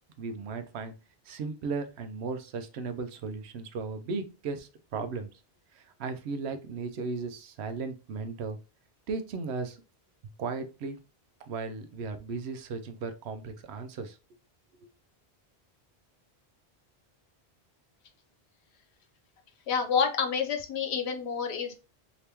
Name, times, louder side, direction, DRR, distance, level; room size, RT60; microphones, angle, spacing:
voice 1, 0.2-0.9 1.3-5.3 5.7-8.6 9.1-9.8 10.4-11.0 11.5-14.2 14.8-14.9, right 4 dB, 85° right, 8 dB, 0.8 m, -36 dB
voice 2, 19.7-21.7, left 6 dB, 85° left, 5 dB, 1.0 m, -28 dB
3.4 x 2.9 x 2.9 m, 0.31 s
omnidirectional pair, 1.1 m